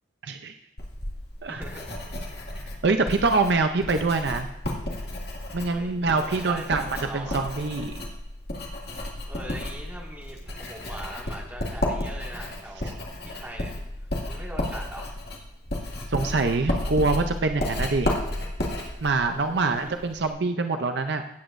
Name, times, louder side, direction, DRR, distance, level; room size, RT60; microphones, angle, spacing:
voice 1, 0.2-0.5 1.4-1.6 2.8-4.5 5.5-8.0 16.1-18.1 19.0-21.2, right 3 dB, 60° right, 6 dB, 0.5 m, -25 dB
Writing, 0.8-20.3, left 1 dB, 55° left, 2.1 m, -32 dB
voice 2, 1.5-2.0 5.7-7.4 9.2-13.7 14.3-15.1 19.5-19.8, right 1 dB, 10° right, -3 dB, 1.8 m, -41 dB
17.0 x 8.1 x 2.6 m, 0.89 s
head